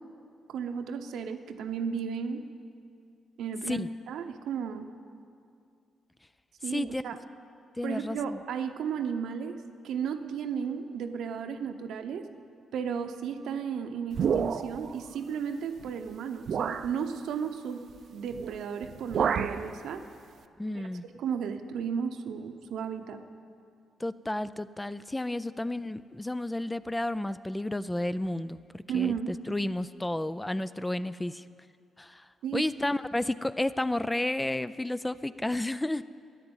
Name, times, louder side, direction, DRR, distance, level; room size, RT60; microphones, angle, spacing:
voice 1, 0.5-2.4 3.4-4.9 6.6-7.2 7.8-9.5 9.8-12.2 12.7-20.0 21.1-23.2 28.9-29.3 32.4-32.7, right 7 dB, 85° right, 7 dB, 0.9 m, -34 dB
voice 2, 6.6-7.0 7.8-8.4 20.6-21.0 24.0-31.5 32.0-36.0, left 1 dB, 10° left, 15 dB, 0.4 m, -32 dB
sound 1, 14.1-14.9 15.8-15.9 16.5-16.9 18.3-18.6 18.8-19.6, right 7 dB, 65° right, 0.5 m, -29 dB
13.0 x 10.5 x 8.8 m, 2.4 s
cardioid pair, 95°, 0 cm